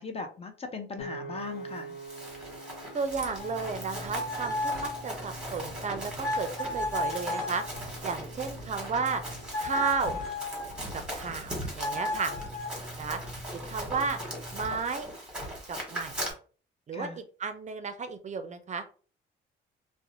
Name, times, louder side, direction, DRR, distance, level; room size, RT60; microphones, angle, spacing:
voice 1, 0.0-2.0 16.9-17.2, left 4 dB, 30° left, 0.5 m, -38 dB
Piano, 1.0-13.2, right 2 dB, 85° left, 0.5 m, -48 dB
Run, 1.8-16.3, equal, 5° right, 1.2 m, -39 dB
voice 2, 2.9-7.6 8.0-9.2 9.6-10.2 10.9-12.3 13.0-13.2 13.7-14.2 14.5-15.1 15.7-16.1 16.9-18.8, right 5 dB, 35° right, 0.4 m, -33 dB
sound 1, 3.4-10.8 11.8-14.7, left 1 dB, 55° left, 1.3 m, -36 dB
2.5 x 2.1 x 2.9 m
cardioid pair, 90°, 20 cm